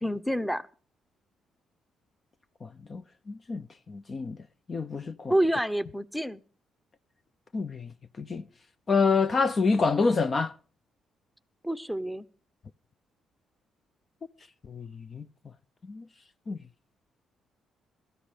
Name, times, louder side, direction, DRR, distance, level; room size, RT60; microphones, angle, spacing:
voice 1, 0.0-0.7 5.3-6.4 11.6-12.3, right 1 dB, ahead, 1.0 m, -28 dB
voice 2, 2.6-3.0 3.3-4.4 4.7-5.3 7.5-7.9 8.2-8.4 8.9-10.5 14.7-15.3 15.9-16.0 16.5-16.6, left 4 dB, 35° left, 0.6 m, -27 dB
17.0 x 14.0 x 5.1 m
cardioid pair, 90°, 0 cm